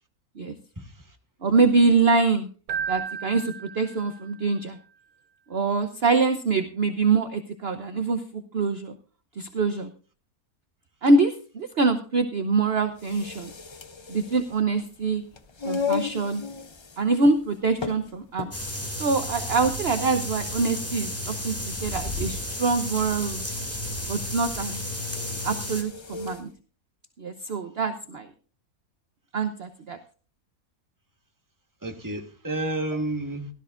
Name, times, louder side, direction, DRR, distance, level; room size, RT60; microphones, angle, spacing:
voice 1, 0.8-1.2 31.8-33.5, right 1 dB, 15° right, 1.5 m, -31 dB
voice 2, 1.4-2.5 2.9-4.8 5.5-9.0 9.4-9.9 11.0-13.5 14.1-15.2 15.6-16.4 17.0-18.5 19.0-21.5 21.8-23.5 24.1-24.8 25.4-26.5 27.2-28.3 29.3-30.0, right 3 dB, 50° right, 1.0 m, -24 dB
Keyboard (musical), 2.7-4.5, right 7 dB, 75° right, 1.2 m, -34 dB
sound 1, 12.9-26.5, left 6 dB, 35° left, 0.4 m, -38 dB
sound 2, 18.5-25.8, left 1 dB, 10° left, 2.3 m, -32 dB
16.5 x 13.0 x 2.5 m
omnidirectional pair, 1.5 m